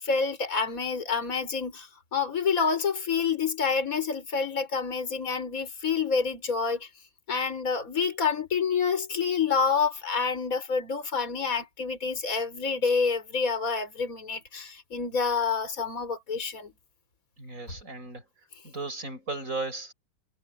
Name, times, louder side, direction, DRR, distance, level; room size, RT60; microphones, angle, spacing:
voice 1, 0.0-6.9 7.3-16.7, left 5 dB, 25° left, 5.0 m, -28 dB
voice 2, 17.4-18.2 18.6-19.9, right 3 dB, 25° right, 8.2 m, -35 dB
omnidirectional pair, 3.4 m